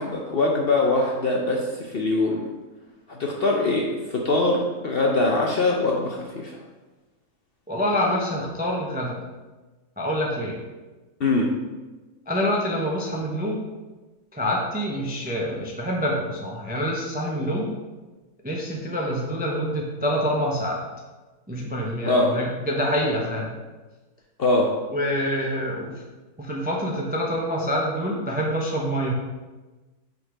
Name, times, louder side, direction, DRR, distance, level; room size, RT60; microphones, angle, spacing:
voice 1, 0.0-2.4 3.1-6.6 11.2-11.5 22.1-22.4 24.4-24.7, left 2 dB, 55° left, 0 dB, 0.7 m, -23 dB
voice 2, 7.7-9.2 10.0-10.6 12.3-13.6 14.3-17.7 18.4-20.8 21.5-23.5 24.9-26.0 26.4-29.1, equal, 10° right, -2 dB, 0.4 m, -26 dB
5.8 x 3.9 x 4.9 m, 1.2 s
omnidirectional pair, 1.6 m